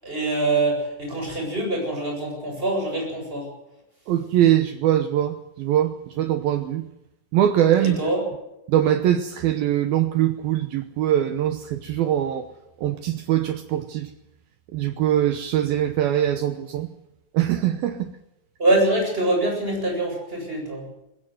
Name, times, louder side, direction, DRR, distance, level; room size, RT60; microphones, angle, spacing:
voice 1, 0.0-3.5 7.8-8.2 18.6-20.8, right 2 dB, 10° right, 1 dB, 7.8 m, -24 dB
voice 2, 4.1-6.8 7.3-8.1 8.7-12.5 12.8-14.1 14.7-16.9 17.3-18.1, right 11 dB, 75° right, 9 dB, 2.2 m, -22 dB
21.5 x 17.0 x 7.9 m, 0.91 s
omnidirectional pair, 5.4 m